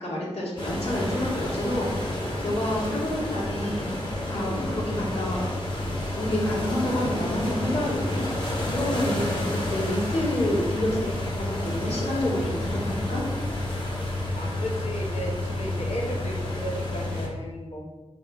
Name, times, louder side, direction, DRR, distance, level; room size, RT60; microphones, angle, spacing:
voice 1, 0.0-5.5 6.2-11.1 11.4-13.2, left 1 dB, 70° left, -5 dB, 2.4 m, -29 dB
sound 1, 0.6-17.3, left 1 dB, 45° left, 2.1 m, -30 dB
voice 2, 14.3-17.8, equal, 85° left, -1 dB, 1.4 m, -34 dB
5.5 x 4.3 x 5.6 m, 1.1 s
wide cardioid pair, 80°, 11 cm